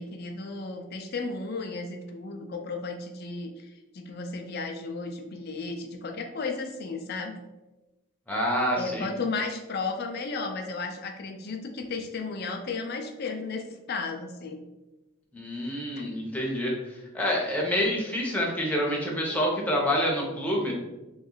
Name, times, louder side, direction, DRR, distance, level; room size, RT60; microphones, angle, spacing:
voice 1, 0.0-7.4 8.8-14.6 16.0-16.1, left 4 dB, 45° left, 3 dB, 0.4 m, -34 dB
voice 2, 8.3-9.1 15.3-20.7, equal, 5° left, -3 dB, 0.7 m, -27 dB
3.1 x 3.1 x 3.8 m, 1.0 s
head